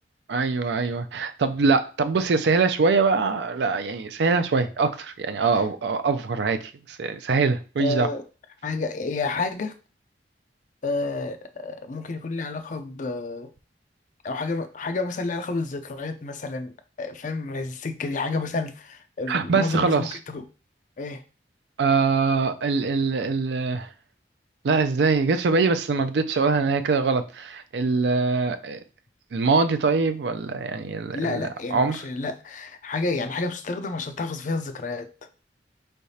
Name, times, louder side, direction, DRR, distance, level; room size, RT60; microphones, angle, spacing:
voice 1, 0.3-8.1 19.3-20.2 21.8-23.9 24.6-28.8 29.3-32.0, right 4 dB, 75° right, 0.4 m, -23 dB
voice 2, 7.8-8.2 8.6-9.7 10.8-13.5 14.2-20.4 21.0-21.2 31.1-35.1, left 3 dB, 45° left, 0.4 m, -30 dB
4.7 x 3.3 x 2.7 m
head